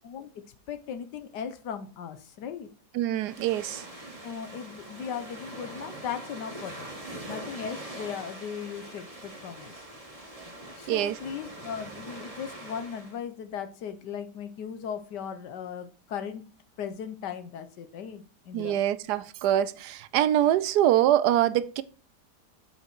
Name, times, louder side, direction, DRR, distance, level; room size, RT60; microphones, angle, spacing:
voice 1, 0.7-2.7 4.2-6.9 7.3-9.8 10.8-16.4 16.8-18.8, left 7 dB, 85° left, 1.6 m, -37 dB
voice 2, 2.9-3.9 10.9-11.2 18.5-21.8, right 12 dB, 75° right, 1.1 m, -24 dB
sound 1, 3.2-13.2, right 1 dB, 20° right, 1.9 m, -43 dB
7.4 x 5.6 x 4.6 m
omnidirectional pair, 1.8 m